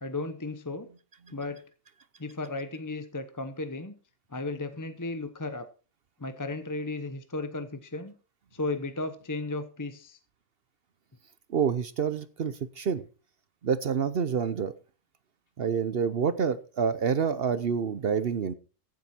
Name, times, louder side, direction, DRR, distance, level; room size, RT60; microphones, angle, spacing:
voice 1, 0.0-0.9 1.3-1.6 2.2-3.9 4.3-5.7 6.2-8.1 8.5-10.2, left 2 dB, 15° left, 9 dB, 0.7 m, -34 dB
voice 2, 11.5-13.0 13.6-14.7 15.6-18.5, right 6 dB, 55° right, 14 dB, 0.8 m, -27 dB
15.0 x 7.8 x 4.4 m, 0.36 s
omnidirectional pair, 1.4 m